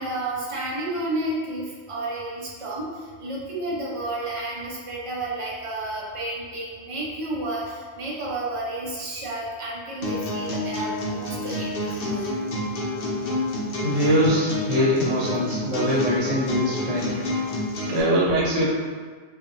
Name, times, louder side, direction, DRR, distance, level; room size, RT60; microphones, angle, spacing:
voice 1, 0.0-12.3, right 2 dB, 55° right, -6 dB, 0.3 m, -31 dB
sound 1, 10.0-18.0, left 1 dB, 60° left, 0.7 m, -29 dB
voice 2, 13.8-17.1 17.9-18.6, equal, 75° right, -6 dB, 1.1 m, -22 dB
2.7 x 2.4 x 2.5 m, 1.5 s
omnidirectional pair, 1.3 m